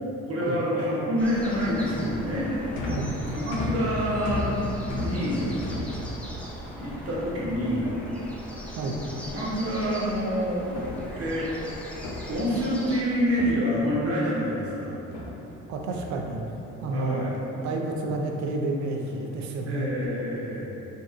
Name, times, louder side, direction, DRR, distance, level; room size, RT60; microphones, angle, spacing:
voice 1, 0.2-2.5 3.3-4.6 5.0-5.4 6.7-7.9 9.0-9.1 9.3-10.8 11.2-11.5 12.3-14.9 16.9-17.3 19.7-20.8, equal, 50° right, -6 dB, 1.0 m, -27 dB
sound 1, 1.2-13.0, equal, 5° left, 0.4 m, -40 dB
sound 2, 1.6-8.7 9.8-10.3 10.6-13.0 13.3-14.6 15.1-16.8 17.2-17.7 17.9-18.3 19.0-19.4 19.9-20.2, left 2 dB, 85° left, 0.6 m, -37 dB
voice 2, 15.7-16.4 16.8-19.9, right 2 dB, 70° right, 2 dB, 0.5 m, -30 dB
4.0 x 2.3 x 2.4 m, 2.9 s
cardioid pair, 90°, 30 cm